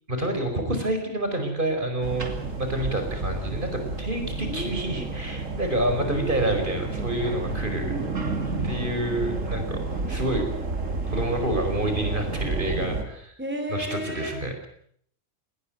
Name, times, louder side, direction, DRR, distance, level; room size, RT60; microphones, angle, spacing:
voice 1, 0.1-2.3 2.6-7.9 8.6-9.8 10.1-10.5 11.1-13.3 13.7-14.7, right 1 dB, 40° right, 5 dB, 5.3 m, -28 dB
sound 1, 2.0-13.0, right 3 dB, 90° right, 3.3 m, -30 dB
voice 2, 4.5-5.1 6.1-7.2 7.8-8.6 8.9-9.1 13.4-14.3, right 1 dB, 10° right, 5 dB, 2.9 m, -35 dB
20.0 x 19.0 x 9.1 m, 0.65 s
omnidirectional pair, 1.3 m